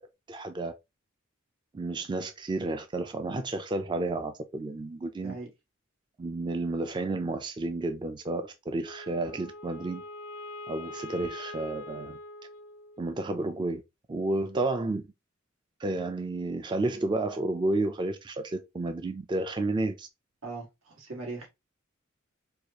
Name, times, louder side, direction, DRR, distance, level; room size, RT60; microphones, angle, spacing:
voice 1, 0.3-0.7 1.7-5.4 6.2-10.0 10.7-12.2 13.0-13.8 14.1-15.0 15.8-20.1, right 2 dB, 20° right, 0.3 m, -31 dB
Wind instrument woodwind instrument, 8.8-13.2, left 2 dB, 85° left, 0.7 m, -43 dB
voice 2, 20.4-21.5, right 3 dB, 90° right, 1.7 m, -39 dB
4.7 x 2.3 x 2.8 m
head